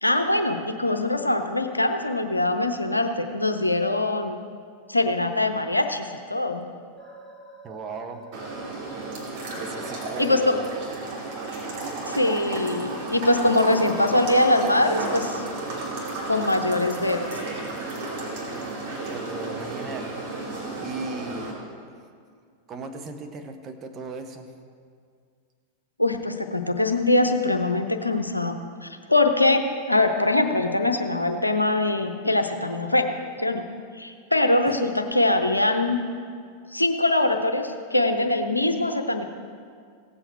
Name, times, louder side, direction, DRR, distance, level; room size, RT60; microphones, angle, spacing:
voice 1, 0.0-4.4 4.9-6.6 10.2-10.6 12.1-15.4 16.3-17.3 26.0-33.1 33.4-33.6 34.0-36.0 36.7-39.2, left 2 dB, 85° left, 6 dB, 0.7 m, -23 dB
sound 1, 7.0-20.4, right 1 dB, ahead, 2.5 m, -45 dB
voice 2, 7.6-8.3 9.6-10.7 19.1-21.5 22.7-24.5 34.7-34.8, right 3 dB, 30° right, 6 dB, 1.1 m, -37 dB
sound 2, 8.3-21.5, right 2 dB, 50° right, 2.7 m, -33 dB
16.5 x 7.9 x 4.5 m, 2.1 s
figure-of-eight pair, 90°, 0 cm